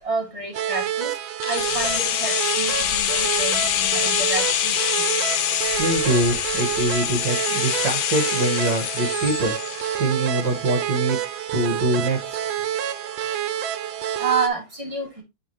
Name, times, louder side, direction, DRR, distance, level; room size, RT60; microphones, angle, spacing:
voice 1, 0.0-1.1 1.5-5.0 14.2-15.2, right 4 dB, 15° right, 2.0 m, -29 dB
sound 1, 0.5-14.5, right 11 dB, 75° right, 1.4 m, -28 dB
sound 2, 1.4-11.3 11.5-11.6, left 11 dB, 75° left, 1.3 m, -25 dB
voice 2, 5.8-11.2 11.5-12.4, right 1 dB, 55° right, 2.1 m, -24 dB
8.3 x 3.9 x 3.0 m
omnidirectional pair, 2.3 m